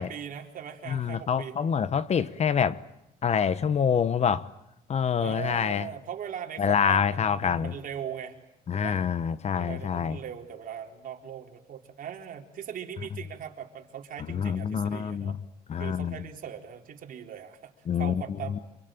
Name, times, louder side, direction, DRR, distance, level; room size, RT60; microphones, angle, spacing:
voice 1, 0.0-1.6 2.1-2.4 5.2-8.4 8.7-9.0 9.5-15.4 15.8-17.7 18.0-18.6, right 8 dB, 55° right, 3.9 m, -40 dB
voice 2, 0.9-2.8 3.2-4.5 4.9-5.9 6.6-7.7 8.7-10.2 14.3-15.4 15.7-16.2 17.9-18.2 18.5-18.6, left 7 dB, 40° left, 1.1 m, -26 dB
28.0 x 23.5 x 9.0 m
cardioid pair, 110°, 17 cm